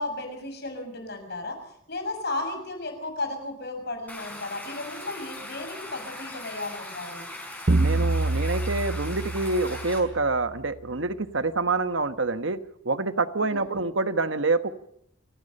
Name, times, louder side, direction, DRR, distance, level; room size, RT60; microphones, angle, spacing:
voice 1, 0.0-1.6 1.9-7.3 13.4-13.7, left 2 dB, 55° left, 5 dB, 6.6 m, -34 dB
Stream, 4.1-10.0, left 1 dB, 10° left, 5.1 m, -40 dB
sound 1, 7.7-10.4, right 2 dB, 50° right, 0.8 m, -26 dB
voice 2, 7.8-12.6 12.8-14.7, right 3 dB, 75° right, 10 dB, 1.3 m, -26 dB
29.0 x 17.0 x 5.4 m, 0.74 s
head